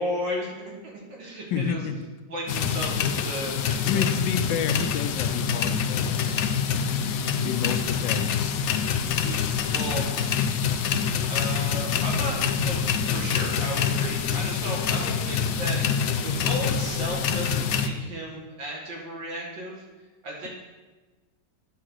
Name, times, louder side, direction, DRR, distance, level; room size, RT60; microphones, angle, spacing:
voice 1, 0.0-1.8 2.3-4.1 9.2-10.1 11.3-19.8 20.2-20.5, equal, 80° right, -2 dB, 2.5 m, -34 dB
voice 2, 1.5-2.0 2.9-3.0 3.8-6.2 7.4-8.7, left 7 dB, 85° left, 9 dB, 1.3 m, -29 dB
sound 1, 2.5-17.9, left 7 dB, 70° left, 0.8 m, -26 dB
9.7 x 3.8 x 6.2 m, 1.2 s
omnidirectional pair, 1.9 m